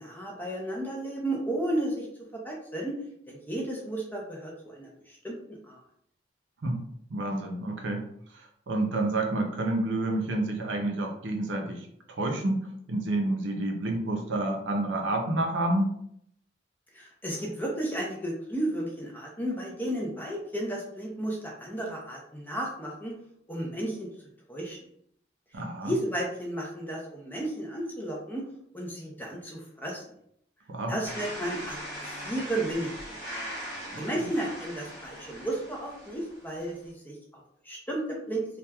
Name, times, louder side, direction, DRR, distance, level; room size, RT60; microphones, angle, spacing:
voice 1, 0.0-2.1 2.3-2.9 3.3-5.8 16.9-23.1 23.5-24.1 24.5-24.8 25.8-28.4 28.7-30.0 30.9-31.8 32.1-33.2 34.0-37.2 37.6-38.5, right 1 dB, 10° left, -2 dB, 0.4 m, -33 dB
voice 2, 7.1-8.1 8.3-15.9 25.5-25.9 30.7-31.0 33.9-34.3, right 2 dB, 80° right, 2 dB, 0.5 m, -29 dB
sound 1, 31.0-36.8, equal, 20° right, 0.8 m, -40 dB
2.8 x 2.3 x 2.2 m, 0.70 s
head